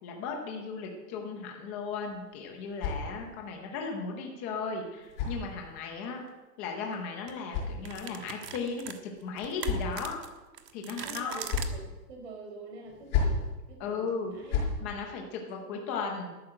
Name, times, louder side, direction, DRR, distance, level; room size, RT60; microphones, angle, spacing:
voice 1, 0.0-6.3 6.6-8.9 9.2-10.2 10.7-11.4 13.8-14.3 14.8-16.4, left 5 dB, 10° left, 2 dB, 0.7 m, -36 dB
sound 1, 1.9-3.5 4.5-6.0 7.0-8.3 9.1-10.2 11.1-11.8 12.8-13.5 14.2-14.8, left 5 dB, 25° left, 5.3 m, -34 dB
sound 2, 5.1-5.3 6.7-6.9 7.3-7.4 7.8-11.7, right 8 dB, 75° right, 1.7 m, -42 dB
voice 2, 10.8-11.8 12.1-14.6 15.4-16.0, right 3 dB, 40° right, 2 dB, 4.9 m, -47 dB
13.0 x 9.1 x 7.7 m, 1.1 s
hypercardioid pair, 175°, 48 cm